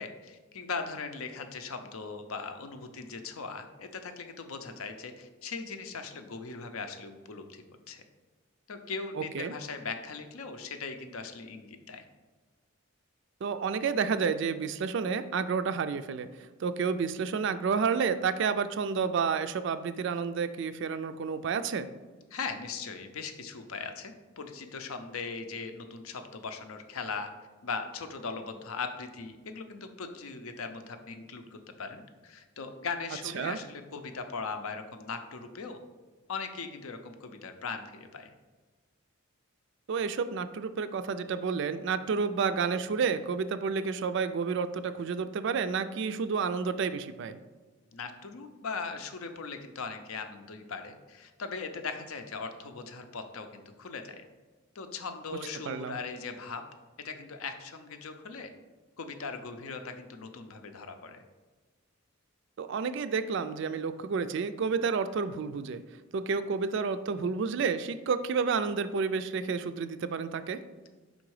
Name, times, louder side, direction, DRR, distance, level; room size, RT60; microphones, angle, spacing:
voice 1, 0.0-8.0 8.7-12.0 22.3-27.3 27.6-35.8 36.3-38.3 47.9-54.2 54.7-56.7 57.0-58.5 59.0-61.2, left 4 dB, 75° left, 7 dB, 0.6 m, -39 dB
voice 2, 9.2-9.5 13.4-16.3 16.6-21.9 33.3-33.6 39.9-47.4 55.7-56.0 62.6-65.8 66.1-70.6, right 5 dB, 55° right, 11 dB, 0.3 m, -30 dB
5.3 x 3.8 x 4.7 m, 1.3 s
head